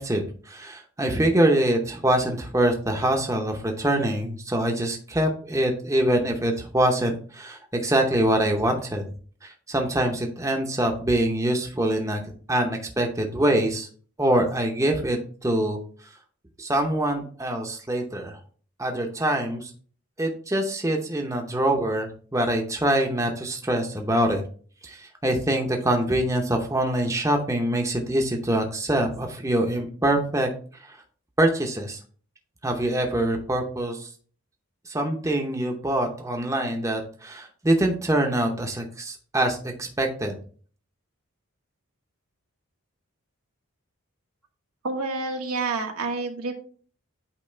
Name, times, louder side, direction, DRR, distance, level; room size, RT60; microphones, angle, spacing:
voice 1, 0.0-9.0 9.4-12.2 12.5-13.9 14.2-15.8 16.6-18.4 18.8-19.7 20.2-24.4 24.8-30.5 31.4-32.0 32.6-34.1 34.9-40.3, right 1 dB, 15° right, 3 dB, 0.7 m, -24 dB
voice 2, 44.8-46.6, right 3 dB, 85° right, 3 dB, 1.2 m, -28 dB
8.6 x 2.9 x 4.3 m, 0.44 s
head